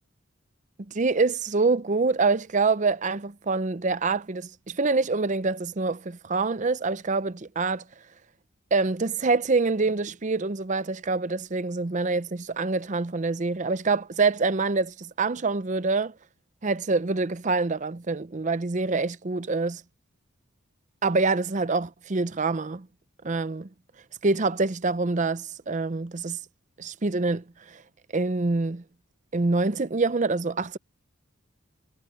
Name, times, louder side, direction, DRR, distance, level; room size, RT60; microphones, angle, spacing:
voice 1, 0.8-7.8 8.7-16.1 16.6-19.8 21.0-22.9 23.2-23.7 24.2-26.4 26.8-27.8 28.1-28.8 29.3-30.8, right 3 dB, 35° right, 0.6 m, -26 dB
head